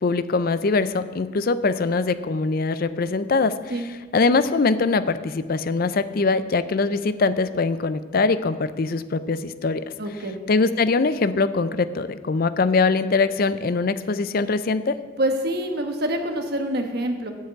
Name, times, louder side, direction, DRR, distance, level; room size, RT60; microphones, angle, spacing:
voice 1, 0.0-3.6 4.1-9.8 10.5-15.0, left 4 dB, 45° left, 13 dB, 0.4 m, -22 dB
voice 2, 10.0-10.4 15.2-17.3, right 1 dB, 50° right, 5 dB, 1.2 m, -26 dB
8.3 x 7.9 x 7.9 m, 1.4 s
head